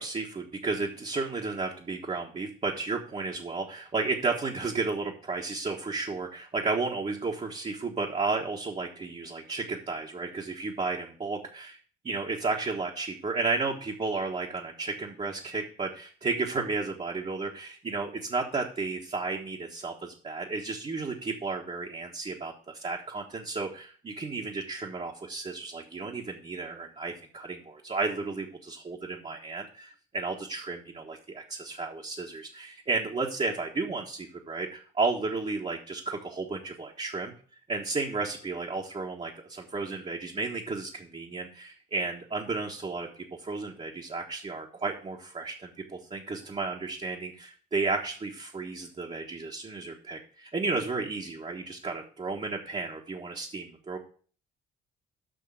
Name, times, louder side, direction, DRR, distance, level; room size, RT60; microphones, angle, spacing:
voice 1, 0.0-11.8 12.0-37.3 37.7-54.0, right 3 dB, 30° right, -1 dB, 1.4 m, -33 dB
6.5 x 6.0 x 7.2 m, 0.43 s
cardioid pair, 90°, 20 cm